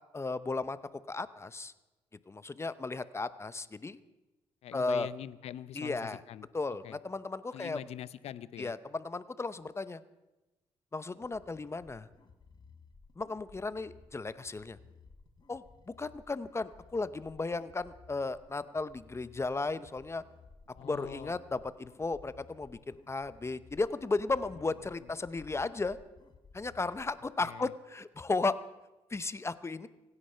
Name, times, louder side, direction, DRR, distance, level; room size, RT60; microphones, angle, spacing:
voice 1, 0.1-0.8 1.1-1.7 2.3-4.0 4.7-5.1 5.8-6.2 6.5-7.8 8.6-10.0 10.9-12.1 13.2-14.8 15.5-20.2 20.8-26.0 26.5-28.6 29.1-29.9, left 3 dB, 25° left, 14 dB, 0.8 m, -35 dB
voice 2, 4.6-6.5 6.8-7.0 7.5-8.8 20.7-21.3 25.0-25.1 27.4-27.7, left 11 dB, 75° left, 16 dB, 0.8 m, -44 dB
sound 1, 11.1-27.5, left 4 dB, 40° left, 1.8 m, -58 dB
25.0 x 9.8 x 5.7 m, 1.1 s
cardioid pair, 75°, 11 cm